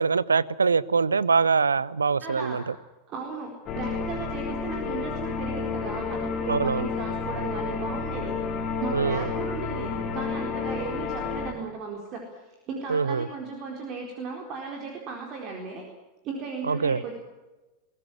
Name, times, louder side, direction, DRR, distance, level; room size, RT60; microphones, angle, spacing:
voice 1, 0.0-2.7 6.5-6.9 8.9-9.3 12.9-13.3 16.6-17.0, right 5 dB, 75° right, 20 dB, 0.7 m, -23 dB
voice 2, 2.2-2.6 3.1-8.4 8.8-12.4 12.7-15.8 16.2-17.2, right 4 dB, 35° right, 1 dB, 4.2 m, -36 dB
sound 1, 3.7-11.5, left 5 dB, 30° left, 3.8 m, -31 dB
22.5 x 17.0 x 9.9 m, 1.1 s
figure-of-eight pair, 90°, 0 cm